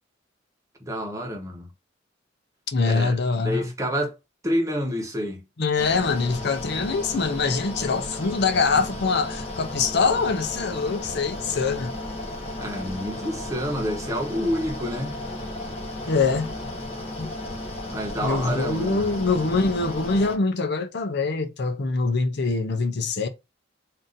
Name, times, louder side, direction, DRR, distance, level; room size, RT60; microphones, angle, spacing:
voice 1, 0.8-1.7 2.8-4.2 4.4-5.4 12.6-15.1 17.9-19.1, equal, 15° right, 1.0 m, -28 dB
voice 2, 2.7-3.7 5.6-11.9 16.1-16.5 17.2-17.3 18.2-23.3, left 4 dB, 60° left, 0.6 m, -24 dB
Mechanical fan, 5.8-20.4, left 1 dB, 35° left, 1.1 m, -34 dB
3.8 x 2.7 x 3.9 m
head